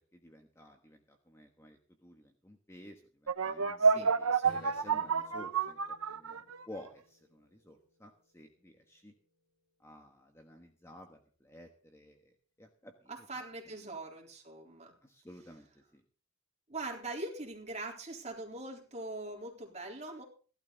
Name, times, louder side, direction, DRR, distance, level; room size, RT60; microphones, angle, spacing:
voice 1, 0.1-9.1 9.8-13.1 15.0-16.0, left 1 dB, 10° left, 4 dB, 1.3 m, -53 dB
sound 1, 3.3-6.8, right 5 dB, 85° right, 1.0 m, -29 dB
voice 2, 3.8-4.7 13.1-14.9 16.7-20.2, right 2 dB, 30° right, 0 dB, 3.7 m, -42 dB
Strum, 4.4-8.6, left 1 dB, 75° left, 4.0 m, -58 dB
16.5 x 12.5 x 4.0 m, 0.40 s
head